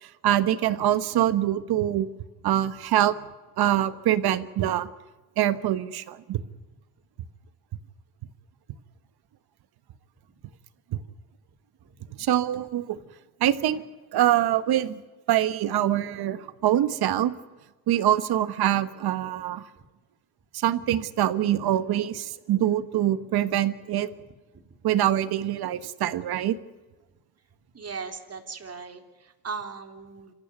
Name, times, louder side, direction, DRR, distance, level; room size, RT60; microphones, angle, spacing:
voice 1, 0.0-2.1 2.4-3.1 3.6-4.9 5.4-6.4 10.9-11.0 12.2-13.0 13.4-13.8 14.1-15.0 15.3-17.3 17.9-19.6 20.5-24.1 24.8-26.5, right 12 dB, 65° right, 13 dB, 1.4 m, -24 dB
voice 2, 27.7-30.3, right 5 dB, 35° right, 5 dB, 3.6 m, -38 dB
26.5 x 15.0 x 9.4 m, 1.2 s
supercardioid pair, 70°, 40 cm